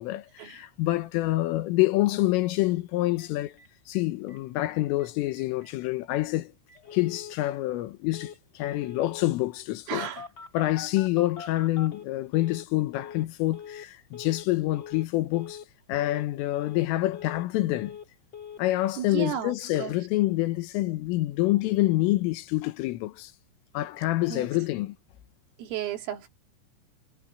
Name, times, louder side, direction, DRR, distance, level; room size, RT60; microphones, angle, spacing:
voice 1, 0.0-3.6 3.9-6.5 6.9-10.1 10.5-15.6 15.9-18.0 18.6-23.3 23.8-25.0, left 17 dB, 80° left, 3.7 m, -27 dB
Telephone, 3.2-3.3 3.6-3.7 3.9-4.0 4.3-4.7 5.0-5.1 5.3-5.7 6.1-6.2 6.7-7.4 8.1-8.4 8.6-9.4 10.0-12.7 12.9-13.3 13.5-13.9 14.1-14.5 14.7-15.1 15.3-15.7 15.9-16.3 16.5-17.5 17.7-18.1 18.3-18.6, left 7 dB, 40° left, 1.9 m, -43 dB
voice 2, 9.9-10.3 19.0-19.9 24.3-24.5 25.6-26.3, right 10 dB, 75° right, 5.2 m, -33 dB
omnidirectional pair, 5.9 m